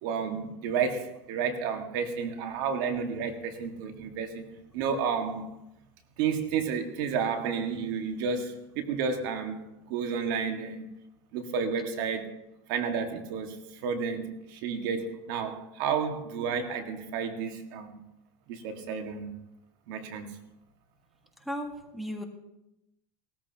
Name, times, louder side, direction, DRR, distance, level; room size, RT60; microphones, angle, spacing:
voice 1, 0.0-4.5 4.7-5.5 6.2-9.6 9.9-10.8 11.3-12.4 12.7-17.9 18.5-19.3 19.9-20.4, right 6 dB, 75° right, 5 dB, 1.8 m, -31 dB
voice 2, 21.4-22.2, equal, ahead, 3 dB, 1.7 m, -35 dB
19.0 x 13.5 x 2.9 m, 0.87 s
supercardioid pair, 120°, 11 cm